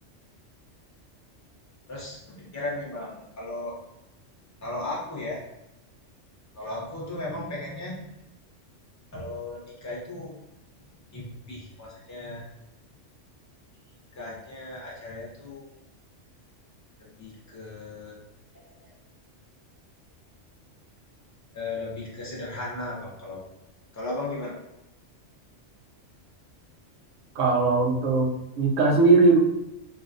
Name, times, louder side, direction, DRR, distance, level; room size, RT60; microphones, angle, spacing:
voice 1, 1.9-3.7 4.6-5.4 6.5-8.0 9.1-10.4 11.1-12.4 14.1-15.7 17.0-18.2 18.5-18.9 21.5-23.4 23.9-24.6, left 2 dB, 15° left, -4 dB, 0.7 m, -36 dB
voice 2, 27.4-28.3 28.6-29.4, right 3 dB, 85° right, -1 dB, 1.0 m, -19 dB
3.3 x 2.3 x 2.5 m, 0.88 s
omnidirectional pair, 1.3 m